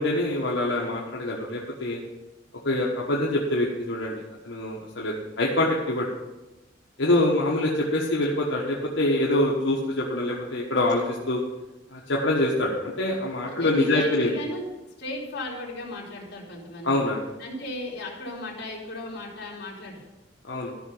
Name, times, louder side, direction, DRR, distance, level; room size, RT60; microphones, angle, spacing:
voice 1, 0.0-2.0 2.6-4.1 4.4-6.1 7.0-11.4 11.9-14.3 16.8-17.2 20.5-20.7, left 1 dB, 75° left, -4 dB, 1.4 m, -25 dB
voice 2, 13.4-14.7 15.0-17.0 17.4-20.1, left 1 dB, 60° left, -3 dB, 3.0 m, -35 dB
13.5 x 5.9 x 5.5 m, 1.1 s
head